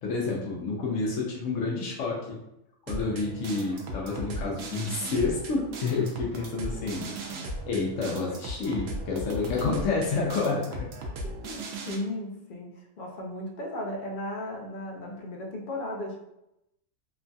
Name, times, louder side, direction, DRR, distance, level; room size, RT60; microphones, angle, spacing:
voice 1, 0.0-2.4 2.9-7.1 7.7-10.9, left 3 dB, 80° left, -2 dB, 1.0 m, -29 dB
sound 1, 2.9-11.9, right 1 dB, 85° right, 1.0 m, -37 dB
voice 2, 9.5-9.8 11.2-12.7 13.0-16.2, left 1 dB, 55° left, 0 dB, 0.6 m, -35 dB
3.0 x 2.6 x 2.2 m, 0.84 s
omnidirectional pair, 1.3 m